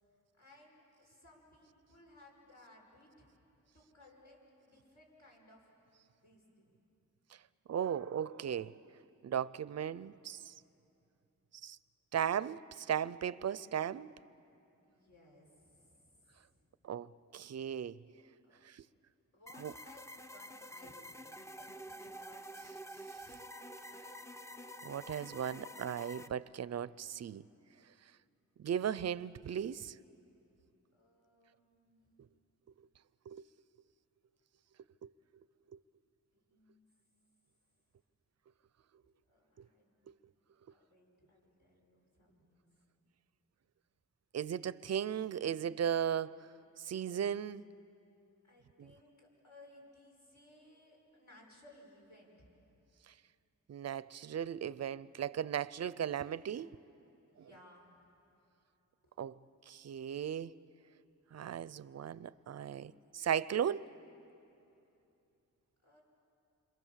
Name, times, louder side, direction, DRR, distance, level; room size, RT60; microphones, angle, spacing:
voice 1, 0.4-3.3 3.7-5.7 6.2-6.8 14.8-16.7 18.4-18.6 19.3-21.0 21.5-22.7 30.9-32.2 36.5-36.9 39.0-40.0 40.7-42.9 48.4-52.5 57.3-58.1 59.0-59.1 65.8-66.0, left 1 dB, 65° left, 6.4 m, -62 dB
voice 2, 7.7-8.8 9.2-10.5 11.6-11.8 12.1-14.1 16.8-18.0 18.6-18.8 19.6-19.7 24.8-27.4 28.6-30.0 33.3-33.4 35.0-35.1 39.6-39.7 44.3-46.4 46.8-47.6 48.8-48.9 53.7-56.7 57.4-57.5 59.2-59.4 59.7-60.5 61.3-63.9, right 9 dB, 55° right, 0.5 m, -36 dB
sound 1, 19.5-26.3, equal, 10° left, 0.6 m, -49 dB
28.0 x 25.5 x 7.4 m
wide cardioid pair, 120°, 31 cm